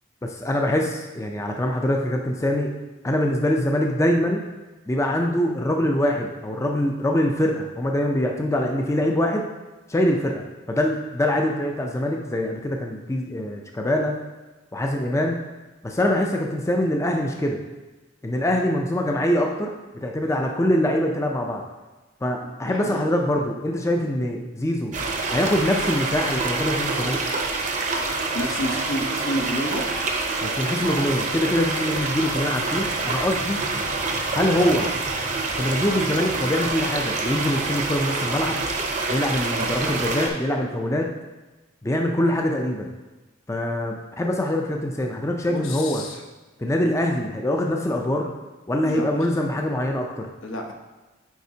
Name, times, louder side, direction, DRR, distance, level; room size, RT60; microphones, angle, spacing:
voice 1, 0.2-2.7 3.0-4.4 4.9-9.5 9.9-10.4 10.7-14.1 14.7-15.4 15.8-17.6 18.2-19.7 20.0-21.6 22.2-24.9 25.3-27.2 30.4-33.6 34.3-34.9 35.6-38.6 39.1-41.1 41.8-42.9 43.5-46.0 46.6-48.3 48.7-50.3, left 1 dB, 15° left, 1 dB, 0.4 m, -24 dB
voice 2, 22.6-23.1 28.3-29.8 45.5-46.2 48.8-49.3 50.4-50.7, equal, 80° left, 2 dB, 0.8 m, -30 dB
sound 1, 24.9-40.3, right 3 dB, 40° right, 0.7 m, -26 dB
9.3 x 4.2 x 2.8 m, 1.2 s
head